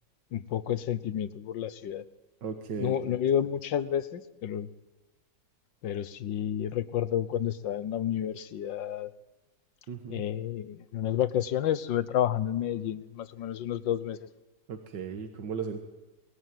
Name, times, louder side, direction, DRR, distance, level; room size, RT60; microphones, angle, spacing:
voice 1, 0.3-2.0 2.8-4.7 5.8-9.1 10.1-14.3, left 10 dB, 90° left, 15 dB, 1.7 m, -30 dB
voice 2, 2.4-2.9 9.9-10.2 14.7-15.8, right 6 dB, 75° right, 6 dB, 2.2 m, -36 dB
23.0 x 20.0 x 9.3 m, 1.2 s
omnidirectional pair, 2.0 m